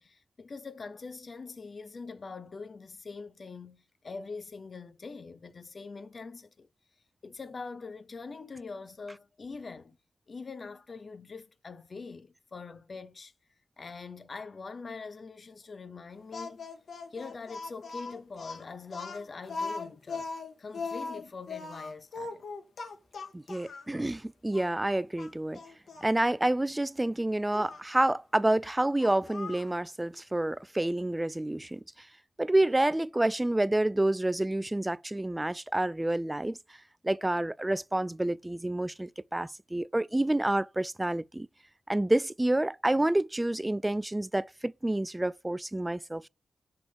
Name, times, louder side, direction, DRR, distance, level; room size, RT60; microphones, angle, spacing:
voice 1, 0.0-6.7 7.2-10.0 10.3-13.3 13.8-16.7 17.1-20.3 20.6-22.5, left 4 dB, 50° left, 0.8 m, -43 dB
Speech, 16.3-23.9 24.5-24.7 25.2-26.1 27.5-27.8 29.0-29.7, left 4 dB, 75° left, 1.6 m, -39 dB
voice 2, 23.3-25.6 26.0-31.8 32.4-36.6 37.0-41.5 41.9-46.3, right 1 dB, 15° right, 0.3 m, -28 dB
6.2 x 3.7 x 4.5 m
cardioid pair, 75°, 0 cm